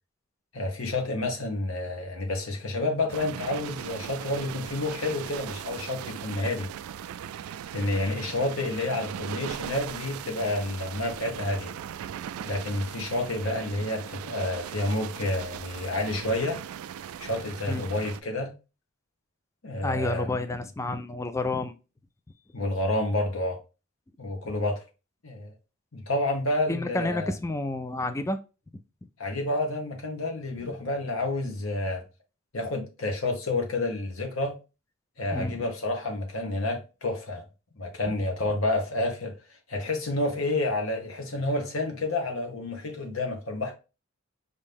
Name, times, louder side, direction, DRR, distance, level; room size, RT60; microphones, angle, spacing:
voice 1, 0.5-6.7 7.7-11.7 12.4-16.6 17.2-18.5 19.6-20.6 22.5-23.6 24.2-24.8 25.2-25.5 25.9-27.3 29.2-32.0 32.5-34.5 35.2-37.4 37.8-39.3 39.7-43.7, left 2 dB, 70° left, 1.3 m, -29 dB
sound 1, 3.1-18.2, right 9 dB, 85° right, 0.3 m, -39 dB
voice 2, 19.8-21.8 26.7-28.4 35.3-35.6, left 2 dB, 15° left, 0.3 m, -30 dB
5.1 x 2.7 x 3.5 m
head